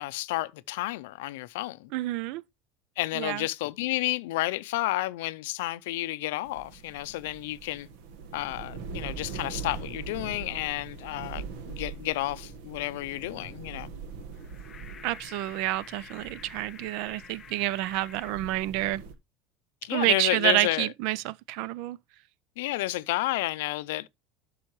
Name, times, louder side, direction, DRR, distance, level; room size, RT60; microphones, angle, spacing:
voice 1, 0.0-1.9 3.0-7.9 8.3-13.9 19.8-20.9 22.6-24.1, left 18 dB, 80° left, 0.5 m, -31 dB
voice 2, 1.9-2.4 3.2-3.4 15.0-19.0 19.9-22.0, right 16 dB, 50° right, 0.4 m, -28 dB
sound 1, 6.4-19.1, right 5 dB, 70° right, 1.4 m, -42 dB
sound 2, 14.3-18.3, left 7 dB, 20° left, 0.4 m, -49 dB
11.5 x 5.5 x 3.0 m
cardioid pair, 175°, 0 cm